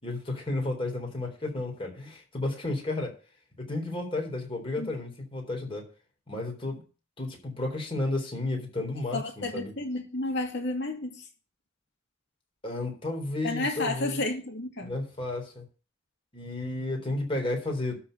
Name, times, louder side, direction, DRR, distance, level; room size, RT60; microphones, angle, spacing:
voice 1, 0.0-3.1 3.6-5.8 6.3-6.8 7.2-9.7 12.6-14.2 14.8-15.6 16.3-18.0, left 2 dB, 25° left, 0 dB, 3.9 m, -32 dB
voice 2, 9.1-11.3 13.4-15.0, left 2 dB, 60° left, 2 dB, 2.6 m, -31 dB
12.5 x 4.4 x 8.0 m, 0.36 s
head